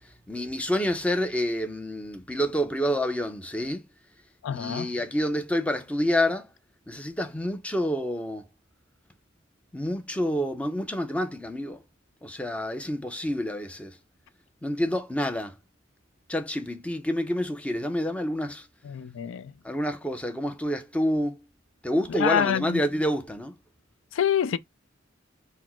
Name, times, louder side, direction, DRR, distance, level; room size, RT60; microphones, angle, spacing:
voice 1, 0.3-3.8 4.5-6.5 6.9-8.4 9.7-11.8 12.2-14.0 14.6-15.5 16.3-18.7 19.6-21.4 21.8-23.5, equal, 5° left, 0.6 m, -28 dB
voice 2, 4.4-4.9 18.8-19.5 22.2-22.8 24.1-24.6, left 8 dB, 80° left, 0.3 m, -26 dB
4.1 x 2.1 x 4.2 m
head